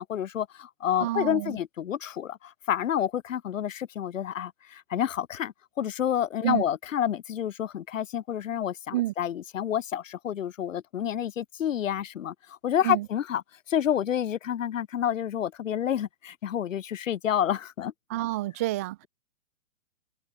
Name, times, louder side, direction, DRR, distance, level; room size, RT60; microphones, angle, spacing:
voice 1, 0.0-13.4 13.7-17.9, left 10 dB, 80° left, 1.5 m, -29 dB
voice 2, 1.0-1.6 6.4-6.6 8.9-9.1 12.8-13.1 18.1-19.0, right 16 dB, 15° right, 0.4 m, -28 dB
hypercardioid pair, 150°, 38 cm